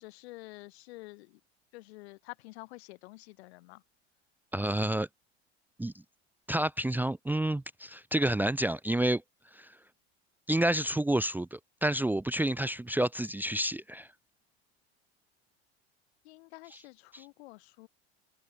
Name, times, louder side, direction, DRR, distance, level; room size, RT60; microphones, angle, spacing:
voice 1, 0.0-1.4 1.7-3.8 16.2-17.9, left 21 dB, 65° left, 2.3 m, -49 dB
voice 2, 4.5-5.1 5.8-6.0 6.5-9.2 9.5-9.8 10.5-14.1 16.7-16.8 17.1-17.3, right 1 dB, 5° right, 0.7 m, -29 dB
open air
hypercardioid pair, 85°, 34 cm